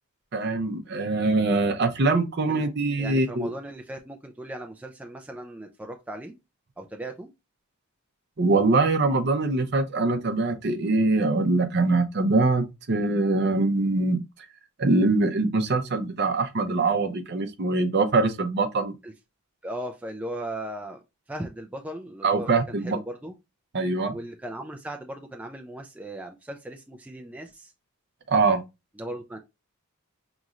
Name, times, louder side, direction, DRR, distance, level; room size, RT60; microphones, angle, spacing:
voice 1, 0.3-3.5 8.4-14.2 14.8-18.9 22.2-23.0 23.7-24.2 28.3-28.6, right 3 dB, 50° right, 0.6 m, -23 dB
voice 2, 3.0-6.4 6.8-7.3 19.0-19.1 19.6-21.0 21.3-23.3 24.1-27.7 29.0-29.4, right 1 dB, 5° right, 0.3 m, -37 dB
5.2 x 3.0 x 2.4 m
head